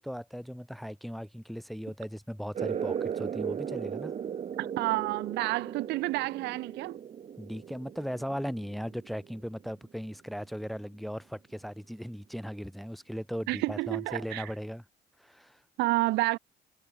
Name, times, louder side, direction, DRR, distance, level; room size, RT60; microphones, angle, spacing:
voice 1, 0.0-4.1 7.4-14.8 15.2-15.6, equal, ahead, 2.9 m, -38 dB
sound 1, 2.5-9.7, right 8 dB, 40° right, 1.6 m, -37 dB
voice 2, 4.6-7.0 13.5-14.5 15.8-16.4, right 20 dB, 90° right, 3.3 m, -30 dB
cardioid pair, 110°, 17 cm